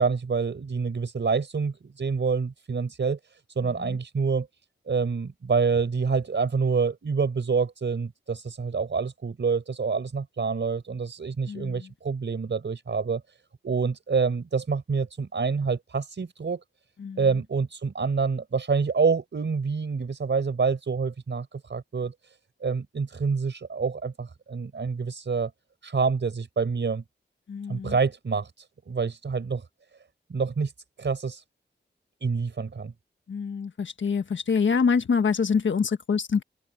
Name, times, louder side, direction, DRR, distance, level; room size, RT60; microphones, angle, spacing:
voice 1, 0.0-3.2 3.6-4.5 4.9-13.2 13.6-16.6 17.2-22.3 22.6-25.5 25.8-27.0 27.7-29.6 30.3-30.7 31.0-31.4 32.2-32.9, right 5 dB, 75° right, 4.5 m, -27 dB
voice 2, 11.5-11.9 17.0-17.2 27.5-28.0 33.3-36.4, left 5 dB, 85° left, 1.4 m, -26 dB
cardioid pair, 55°, 19 cm